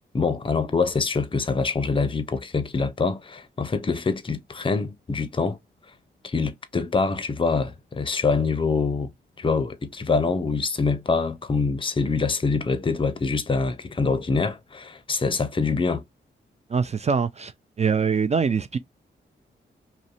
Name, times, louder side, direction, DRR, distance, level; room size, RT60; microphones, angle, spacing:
voice 1, 0.1-5.6 6.2-9.1 9.4-16.0, left 4 dB, 25° left, 0.5 m, -25 dB
voice 2, 16.7-17.5 17.8-18.8, right 6 dB, 35° right, 0.4 m, -23 dB
2.6 x 2.1 x 2.5 m
cardioid pair, 60°, 20 cm